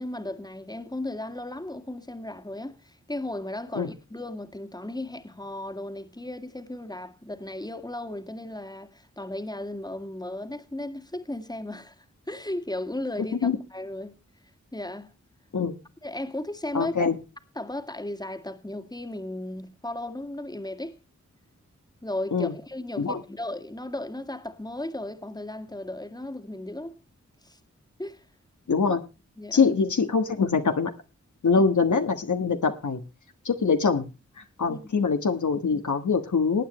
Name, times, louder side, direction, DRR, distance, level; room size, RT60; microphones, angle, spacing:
voice 1, 0.0-14.1 14.7-15.1 16.0-16.9 17.6-21.0 22.0-27.0 27.4-27.6 28.0-28.2 29.4-29.7 31.5-31.6 34.7-35.0, left 1 dB, 15° left, 1.9 m, -35 dB
voice 2, 16.7-17.2 22.3-22.5 23.0-23.2 28.7-29.0 29.5-30.9 31.4-33.0 33.4-34.0 34.6-36.6, left 5 dB, 75° left, 1.4 m, -23 dB
19.5 x 8.7 x 3.0 m
cardioid pair, 40°, 30 cm